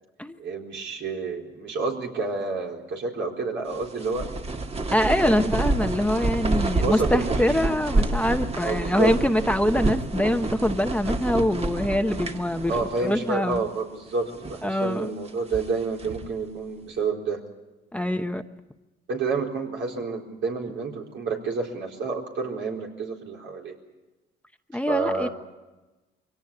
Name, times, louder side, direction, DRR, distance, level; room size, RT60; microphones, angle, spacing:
voice 1, 0.4-4.3 5.2-5.5 6.7-7.6 8.1-8.2 8.6-9.1 12.7-17.4 18.0-18.2 19.1-23.7 24.9-25.3, right 4 dB, 70° right, 0 dB, 4.2 m, -29 dB
Fast Blanket Shaking, 3.7-13.2 13.5-13.6 14.2-14.7 15.3-16.4, right 2 dB, 30° right, 1.8 m, -28 dB
voice 2, 4.9-13.6 14.6-15.1 17.9-18.4 24.7-25.3, left 1 dB, 5° left, 7 dB, 1.0 m, -24 dB
23.0 x 17.5 x 8.8 m, 1.1 s
cardioid pair, 90°, 20 cm